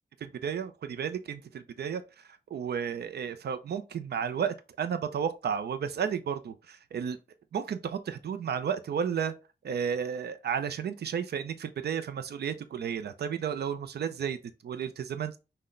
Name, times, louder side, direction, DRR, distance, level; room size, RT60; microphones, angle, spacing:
voice 1, 0.2-7.2 7.5-9.3 9.6-14.4 14.6-15.4, right 7 dB, 80° right, 0.5 m, -33 dB
5.7 x 2.2 x 3.7 m
wide cardioid pair, 165°, 17 cm